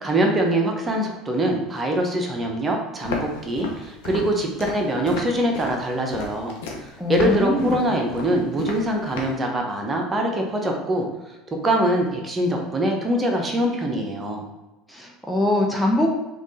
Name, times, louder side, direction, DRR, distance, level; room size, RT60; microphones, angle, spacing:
voice 1, 0.0-6.5 6.8-11.1 11.6-14.4, right 1 dB, 25° right, 2 dB, 0.9 m, -23 dB
Walk footsteps, 3.0-9.4, left 3 dB, 75° left, 0.8 m, -33 dB
voice 2, 7.0-8.0 14.9-16.1, left 1 dB, 5° left, 0 dB, 0.7 m, -23 dB
3.6 x 3.1 x 4.1 m, 1.0 s
hypercardioid pair, 80°, 0 cm